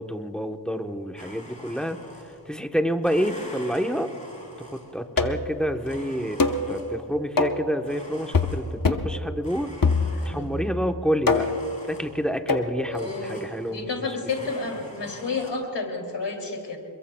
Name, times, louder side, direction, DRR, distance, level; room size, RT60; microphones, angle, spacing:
voice 1, 0.0-2.0 2.5-4.1 4.6-9.7 10.2-11.5 11.9-14.2, equal, ahead, 5 dB, 1.0 m, -28 dB
Domestic sounds home sounds, 1.2-2.6 3.0-5.1 5.8-7.1 7.8-9.0 9.4-10.7 11.3-12.4 12.9-14.0 14.3-15.5, left 1 dB, 15° left, 5.0 m, -45 dB
sound 1, 5.2-5.5 6.4-6.7 7.4-7.7 8.3-8.6 8.8-9.1 9.8-10.4 11.3-11.7 12.5-12.7, left 4 dB, 50° left, 1.1 m, -23 dB
voice 2, 10.1-10.7 12.8-16.8, left 3 dB, 80° left, 2 dB, 2.8 m, -31 dB
28.0 x 22.0 x 2.3 m, 2.7 s
wide cardioid pair, 55°, 42 cm